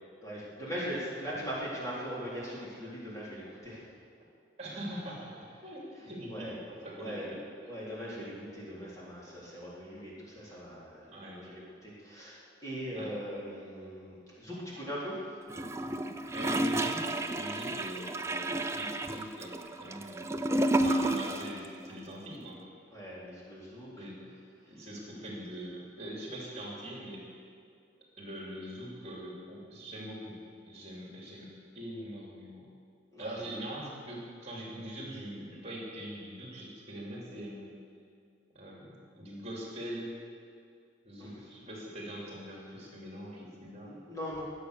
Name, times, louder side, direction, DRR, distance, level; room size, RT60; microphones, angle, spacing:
voice 1, 0.2-3.9 6.3-6.6 6.9-7.3 7.6-15.3 22.9-24.1 24.6-24.9 33.1-33.4 41.2-41.4 43.8-44.4, equal, 20° left, -7 dB, 3.8 m, -40 dB
voice 2, 4.6-5.4 5.6-7.4 11.1-11.4 12.9-13.1 16.3-20.2 20.8-22.6 24.0-24.3 24.7-27.3 28.2-30.4 30.7-32.7 33.2-37.7 38.5-40.1 41.0-43.9, right 1 dB, 35° right, -3 dB, 3.1 m, -42 dB
Gurgling / Toilet flush, 15.5-21.6 21.8-21.9, right 1 dB, 15° right, 0.6 m, -31 dB
22.5 x 8.4 x 6.7 m, 2.3 s
head